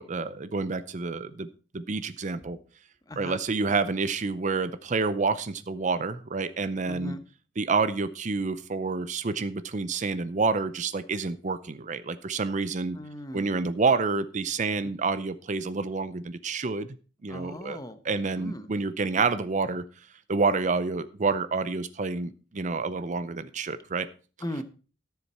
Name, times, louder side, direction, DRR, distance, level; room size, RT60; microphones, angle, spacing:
voice 1, 0.0-1.5 1.7-2.6 3.2-7.2 7.6-13.0 13.3-16.9 17.2-17.8 18.0-19.8 20.3-24.1, right 4 dB, 40° right, 14 dB, 0.6 m, -28 dB
voice 2, 3.1-3.4 6.9-7.2 13.0-13.5 17.3-18.0 18.4-18.7 24.4-24.6, equal, 20° left, 10 dB, 0.9 m, -37 dB
13.5 x 7.1 x 4.3 m, 0.36 s
head